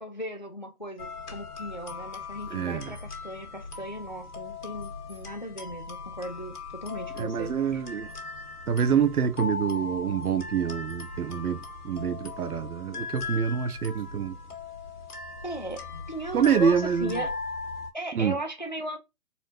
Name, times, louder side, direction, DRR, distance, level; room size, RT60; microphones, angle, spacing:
voice 1, 0.0-7.8 15.4-17.3 17.9-19.0, right 1 dB, 35° left, 0.4 m, -37 dB
sound 1, 1.0-17.9, left 4 dB, 75° left, 1.6 m, -39 dB
voice 2, 2.5-2.9 7.2-8.1 8.7-14.4 16.3-17.2 18.1-18.4, right 7 dB, 75° right, 0.7 m, -26 dB
4.2 x 2.6 x 2.6 m
figure-of-eight pair, 150°, 45 cm